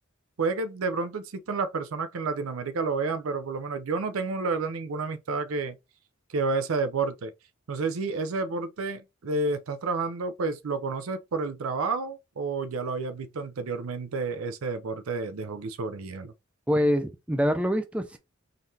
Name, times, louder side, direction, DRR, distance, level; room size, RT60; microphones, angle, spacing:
voice 1, 0.4-5.8 6.3-7.3 7.7-16.3, right 3 dB, 75° right, 0.5 m, -30 dB
voice 2, 16.7-18.2, equal, 5° right, 0.4 m, -25 dB
3.9 x 3.1 x 2.7 m
head